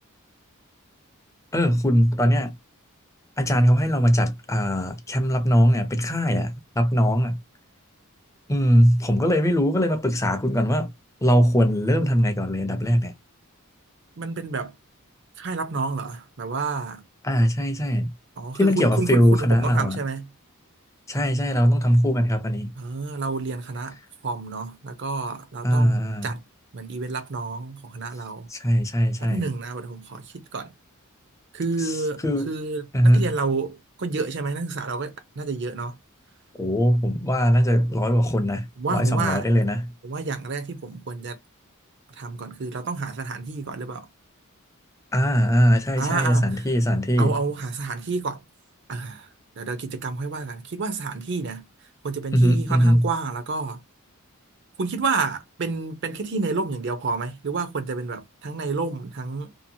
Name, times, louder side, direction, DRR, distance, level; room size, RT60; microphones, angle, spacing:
voice 1, 1.5-2.5 3.4-7.4 8.5-10.9 11.2-13.1 17.2-18.1 18.6-20.0 21.1-22.7 25.6-26.3 28.5-29.5 32.2-32.5 32.9-33.3 36.6-39.8 45.1-47.4 52.3-53.1, equal, 15° left, 0.5 m, -20 dB
voice 2, 14.2-14.7 15.4-17.0 18.4-20.3 22.8-24.0 24.2-26.4 26.7-28.5 29.2-30.7 31.5-35.9 38.8-39.4 40.0-41.4 42.2-44.1 46.0-46.7 47.2-48.4 48.9-49.3 49.6-51.6 52.0-53.8 54.8-59.5, right 4 dB, 55° right, 0.6 m, -29 dB
2.7 x 2.1 x 2.6 m
head